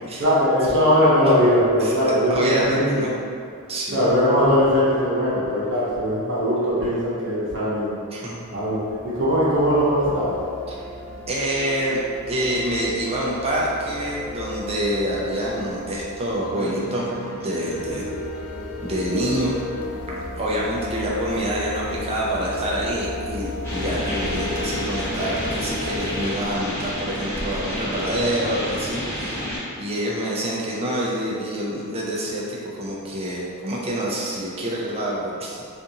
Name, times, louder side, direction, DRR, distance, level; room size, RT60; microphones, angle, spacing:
voice 1, 0.2-3.1 3.9-8.0 8.5-10.4, equal, 55° right, -9 dB, 0.8 m, -20 dB
voice 2, 2.3-3.1 3.7-4.0 8.1-8.4 11.3-12.0 12.3-18.1 18.8-19.6 20.2-35.6, right 1 dB, 25° right, -4 dB, 0.5 m, -27 dB
sound 1, 8.4-26.3, left 1 dB, 80° left, 0.5 m, -34 dB
sound 2, 23.6-29.6, equal, 10° left, 0.9 m, -29 dB
2.5 x 2.5 x 2.7 m, 2.3 s
head